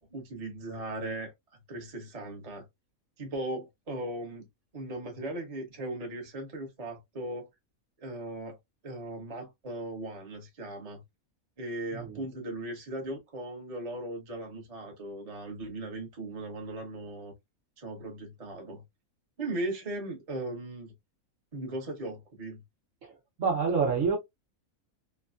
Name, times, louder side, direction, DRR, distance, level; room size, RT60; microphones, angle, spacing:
voice 1, 0.1-1.3 1.7-2.7 3.2-4.5 4.7-7.5 8.0-8.6 8.8-11.0 11.6-17.3 17.8-18.8 19.4-20.9 21.5-22.6, right 1 dB, 30° right, 1.0 m, -38 dB
voice 2, 11.9-12.2 23.0-24.2, right 5 dB, 65° right, 1.3 m, -28 dB
3.2 x 2.2 x 2.4 m
omnidirectional pair, 1.5 m